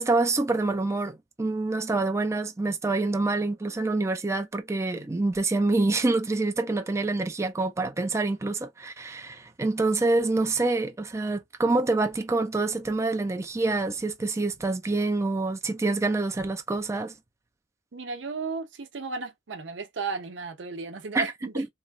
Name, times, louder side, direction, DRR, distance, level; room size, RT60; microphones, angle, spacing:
voice 1, 0.0-17.1 21.1-21.3 21.6-21.7, right 2 dB, 15° right, 0.4 m, -26 dB
voice 2, 17.9-21.6, right 4 dB, 85° right, 0.7 m, -34 dB
3.0 x 2.3 x 2.3 m
head